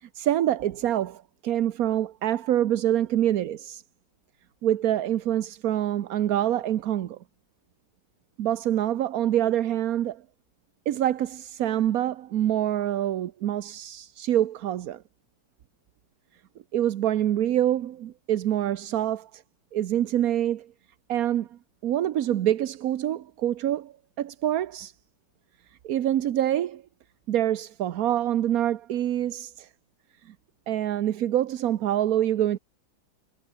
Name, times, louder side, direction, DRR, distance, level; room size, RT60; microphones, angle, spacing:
voice 1, 0.0-3.8 4.6-7.2 8.4-10.2 10.9-15.0 16.7-19.4 19.7-20.7 21.1-24.9 25.8-26.8 27.3-29.7 30.3-30.4 30.7-32.6, right 11 dB, 60° right, 1.1 m, -26 dB
omnidirectional pair, 1.9 m